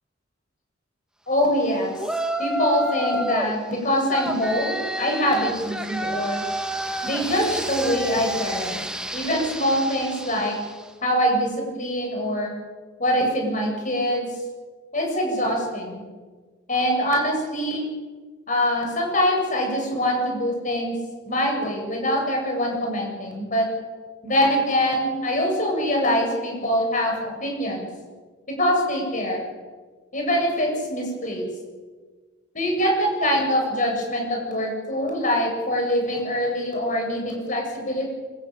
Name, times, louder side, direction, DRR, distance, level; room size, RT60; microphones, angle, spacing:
voice 1, 1.3-1.9 2.4-6.4 7.0-8.8 9.1-10.6 11.0-12.5 13.0-14.3 14.9-16.0 16.7-17.8 18.5-20.9 21.3-23.7 24.2-27.9 28.6-29.4 30.1-31.5 32.5-38.1, equal, 40° left, 1 dB, 7.7 m, -24 dB
Yell, 2.0-3.5 4.1-10.8, equal, 5° right, 1.3 m, -30 dB
26.0 x 15.0 x 9.1 m, 1.4 s
head